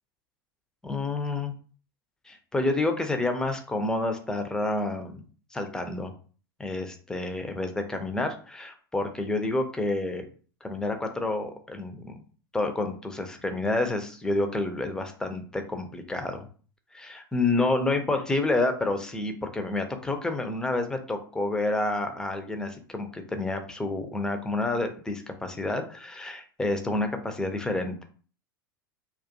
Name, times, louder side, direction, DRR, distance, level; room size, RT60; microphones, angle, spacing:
voice 1, 0.8-1.6 2.3-5.2 5.5-6.1 6.6-10.3 10.6-12.2 12.5-16.5 16.9-28.0, left 2 dB, 5° left, 6 dB, 0.4 m, -29 dB
2.3 x 2.3 x 2.5 m, 0.40 s
figure-of-eight pair, 85°, 12 cm